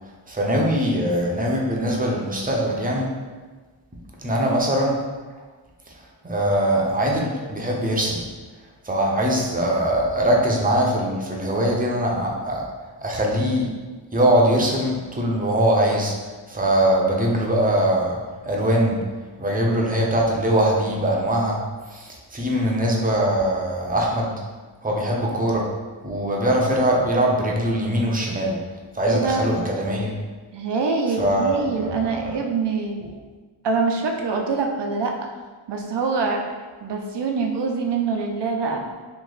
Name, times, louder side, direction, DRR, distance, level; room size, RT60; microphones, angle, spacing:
voice 1, 0.3-3.1 4.2-5.0 6.2-8.2 8.8-12.7 13.0-13.7 14.1-16.1 16.5-18.2 18.4-19.1 19.4-21.6 21.9-24.3 24.8-25.7 26.0-28.6 28.9-30.1 31.2-32.4, right 1 dB, 20° right, -2 dB, 0.7 m, -22 dB
voice 2, 29.1-29.5 30.5-33.0 33.6-35.2 35.7-36.4 36.8-38.8, right 4 dB, 70° right, 2 dB, 0.6 m, -24 dB
3.1 x 2.6 x 3.9 m, 1.4 s
wide cardioid pair, 75°, 44 cm